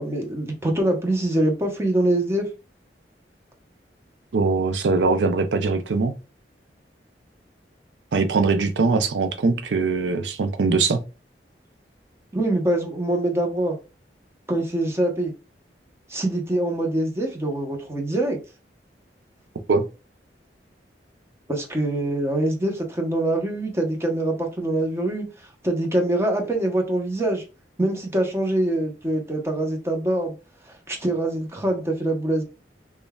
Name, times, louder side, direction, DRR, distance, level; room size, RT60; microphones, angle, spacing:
voice 1, 0.0-2.4 12.3-13.8 14.5-15.3 16.1-18.4 21.5-25.3 25.6-27.4 27.8-30.3 30.7-32.4, right 1 dB, 15° right, 0.9 m, -24 dB
voice 2, 4.3-6.2 8.1-11.0 19.7-19.8, right 4 dB, 85° right, 0.5 m, -21 dB
5.2 x 2.3 x 2.3 m
head